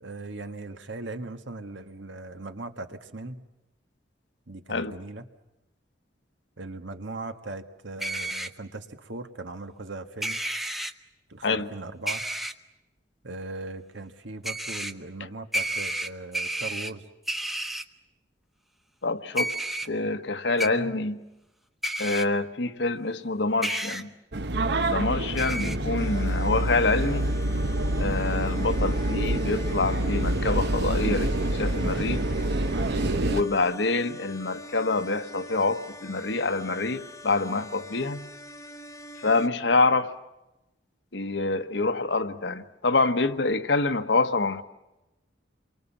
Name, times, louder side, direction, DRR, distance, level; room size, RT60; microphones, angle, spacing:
voice 1, 0.0-3.5 4.5-5.3 6.6-10.4 11.3-12.2 13.2-17.1 20.6-21.0 33.1-33.3, right 2 dB, 80° right, 1.7 m, -39 dB
sound 1, 8.0-8.5 10.2-10.9 12.1-12.5 14.4-14.9 15.5-16.9 17.3-17.8 19.4-19.9 20.6-20.7 21.8-22.2 23.6-24.0 25.4-25.8, right 1 dB, ahead, 0.9 m, -30 dB
voice 2, 19.0-19.5 19.8-21.2 22.0-24.1 24.9-27.3 28.0-32.2 33.2-38.2 39.2-40.1 41.1-44.6, left 3 dB, 70° left, 1.3 m, -26 dB
sound 2, 24.3-33.4, right 1 dB, 65° right, 1.0 m, -26 dB
sound 3, 26.0-39.5, left 1 dB, 15° left, 1.3 m, -44 dB
28.0 x 24.0 x 7.3 m
head